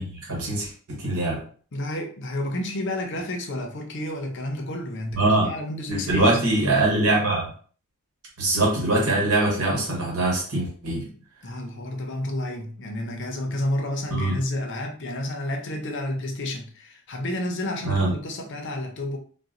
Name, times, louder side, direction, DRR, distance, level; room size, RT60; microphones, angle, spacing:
voice 1, 0.0-1.4 5.1-5.5 5.9-7.5 8.4-11.0 14.1-14.4 17.8-18.1, right 2 dB, 80° right, 1.3 m, -23 dB
voice 2, 1.7-6.6 11.0-11.2 11.4-19.2, left 1 dB, 55° left, 0.6 m, -30 dB
4.0 x 2.2 x 2.5 m
head